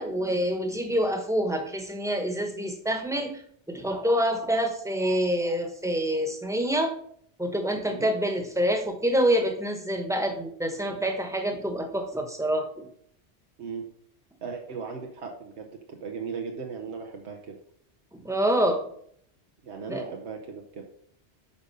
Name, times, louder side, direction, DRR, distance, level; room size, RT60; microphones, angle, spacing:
voice 1, 0.0-3.4 3.7-6.9 7.4-12.9 18.1-18.8 19.9-20.1, equal, 5° right, 4 dB, 1.1 m, -26 dB
voice 2, 13.6-13.9 14.4-17.6 19.6-20.9, right 5 dB, 80° right, 2 dB, 1.2 m, -37 dB
8.6 x 5.2 x 5.5 m, 0.65 s
omnidirectional pair, 1.1 m